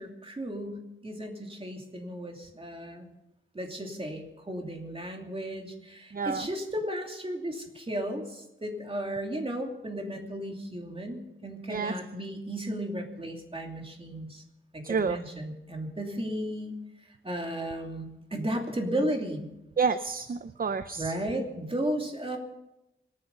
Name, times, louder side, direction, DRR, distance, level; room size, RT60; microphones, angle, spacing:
voice 1, 0.0-3.1 3.5-14.4 14.7-16.8 17.2-19.5 21.0-22.4, right 1 dB, 25° right, 2 dB, 2.8 m, -34 dB
voice 2, 6.1-6.4 11.7-11.9 14.8-15.2 19.8-21.1, right 5 dB, 45° right, 12 dB, 0.6 m, -29 dB
25.0 x 9.7 x 5.4 m, 0.91 s
wide cardioid pair, 105°, 21 cm